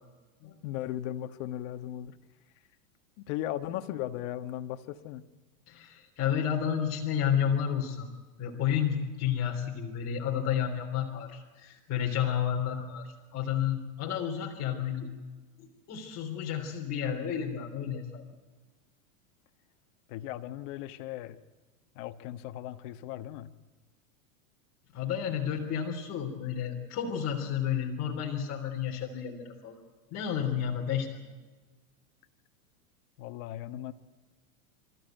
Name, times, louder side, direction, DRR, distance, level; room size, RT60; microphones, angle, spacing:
voice 1, 0.6-2.2 3.2-5.2 20.1-21.4 21.9-23.5 33.2-33.9, left 13 dB, 55° left, 8 dB, 1.5 m, -37 dB
voice 2, 5.7-8.1 8.4-15.1 15.6-18.2 24.9-29.8 30.1-31.1, left 8 dB, 35° left, 0 dB, 3.5 m, -31 dB
27.5 x 14.5 x 9.1 m, 1.3 s
supercardioid pair, 125°, 43 cm